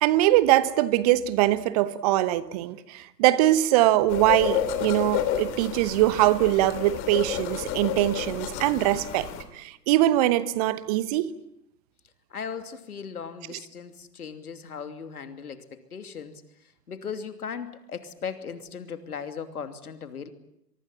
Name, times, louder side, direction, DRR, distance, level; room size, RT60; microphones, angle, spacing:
voice 1, 0.0-11.3, right 15 dB, 25° right, 1.0 m, -22 dB
sound 1, 4.1-9.4, left 10 dB, 25° left, 2.8 m, -30 dB
voice 2, 12.3-20.3, left 6 dB, 65° left, 3.0 m, -38 dB
24.5 x 23.5 x 8.7 m
figure-of-eight pair, 125°, 48 cm